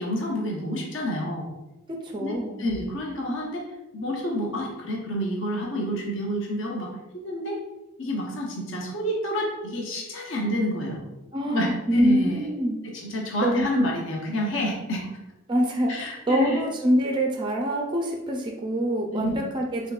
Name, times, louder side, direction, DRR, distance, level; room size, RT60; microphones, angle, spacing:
voice 1, 0.0-1.5 2.2-7.6 8.0-11.0 11.5-12.5 12.9-15.1 15.9-16.6 19.1-19.4, equal, 60° left, -1 dB, 0.7 m, -29 dB
voice 2, 2.0-2.6 11.3-12.8 13.4-13.9 15.5-19.9, equal, 20° right, 0 dB, 0.3 m, -25 dB
3.5 x 3.5 x 2.3 m, 1.0 s
head